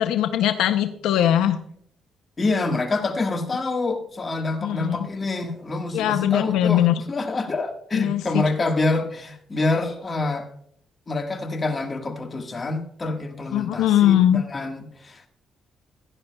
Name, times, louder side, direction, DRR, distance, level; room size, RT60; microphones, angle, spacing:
voice 1, 0.0-1.6 4.6-5.1 5.9-6.9 7.9-8.4 13.5-14.4, left 11 dB, 90° left, 0.6 m, -20 dB
voice 2, 2.4-10.5 11.1-15.3, left 3 dB, 30° left, 1.6 m, -26 dB
16.0 x 11.0 x 2.3 m
cardioid pair, 90°, 0 cm